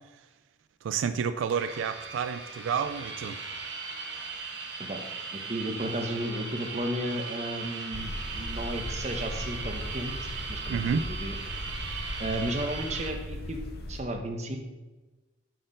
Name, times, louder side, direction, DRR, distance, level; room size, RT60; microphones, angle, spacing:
voice 1, 0.8-3.4 10.7-11.1, right 6 dB, 85° right, 12 dB, 0.3 m, -30 dB
sound 1, 1.5-13.1, right 4 dB, 65° right, 1.1 m, -38 dB
voice 2, 5.3-11.4 12.2-13.6 13.9-14.6, right 1 dB, 35° right, 4 dB, 0.9 m, -34 dB
sound 2, 7.9-14.0, left 1 dB, 55° left, 0.7 m, -38 dB
7.7 x 4.3 x 5.1 m, 1.2 s
head